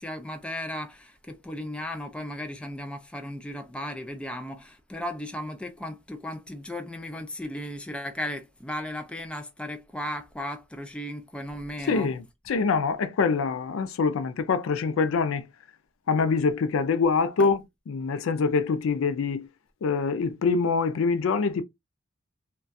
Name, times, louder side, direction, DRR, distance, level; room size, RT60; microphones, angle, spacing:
voice 1, 0.0-12.1 17.4-17.5, left 1 dB, 5° left, 0.3 m, -36 dB
voice 2, 11.8-15.4 16.1-19.5 19.8-21.6, left 5 dB, 85° left, 0.4 m, -25 dB
2.3 x 2.2 x 2.5 m
head